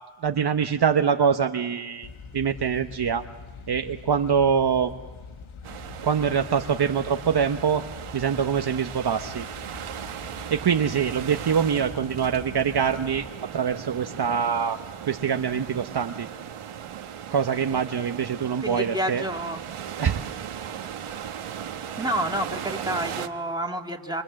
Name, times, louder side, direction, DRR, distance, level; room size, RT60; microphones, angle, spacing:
voice 1, 0.2-3.3 3.7-4.9 6.0-7.8 8.1-9.5 10.5-13.2 13.5-14.8 15.1-16.3 17.3-19.2 20.0-20.2, right 7 dB, 50° right, 6 dB, 1.1 m, -24 dB
sound 1, 2.0-13.3, left 4 dB, 75° left, 1.8 m, -44 dB
sound 2, 5.6-23.3, right 9 dB, 85° right, 1.4 m, -37 dB
voice 2, 18.6-19.6 22.0-24.2, right 1 dB, 10° right, 1 dB, 2.8 m, -29 dB
27.5 x 26.0 x 7.7 m, 1.3 s
cardioid pair, 70°, 49 cm